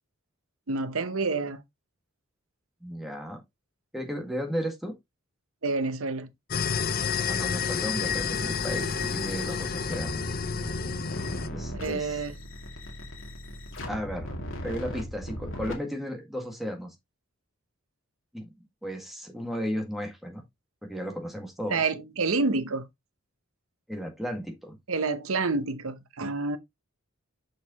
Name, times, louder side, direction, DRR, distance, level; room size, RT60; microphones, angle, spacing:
voice 1, 0.7-1.6 5.6-6.3 11.7-12.4 21.7-22.9 24.9-26.6, right 3 dB, 75° right, 0.9 m, -28 dB
voice 2, 2.8-3.4 3.9-4.9 7.2-10.2 11.5-12.2 13.9-14.3 14.6-16.9 18.3-18.5 18.8-20.4 20.8-21.8 23.9-24.8, equal, ahead, 1.8 m, -34 dB
sound 1, 6.5-11.5, left 6 dB, 40° left, 0.6 m, -30 dB
sound 2, 8.0-15.7, equal, 60° left, 2.4 m, -38 dB
6.5 x 6.4 x 2.9 m
head